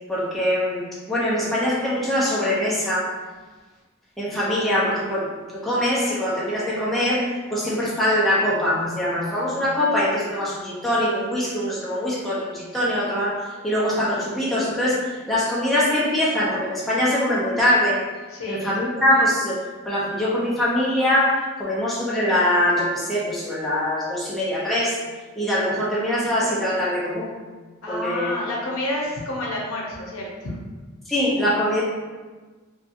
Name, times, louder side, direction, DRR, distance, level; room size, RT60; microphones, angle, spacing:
voice 1, 0.1-0.8 1.1-3.1 4.2-18.0 18.5-19.6 19.9-25.0 25.4-27.3 27.9-28.3 31.1-31.8, left 1 dB, ahead, -8 dB, 0.5 m, -23 dB
voice 2, 18.3-18.6 27.8-30.6, left 1 dB, 80° left, -2 dB, 0.6 m, -29 dB
2.7 x 2.3 x 2.5 m, 1.3 s
head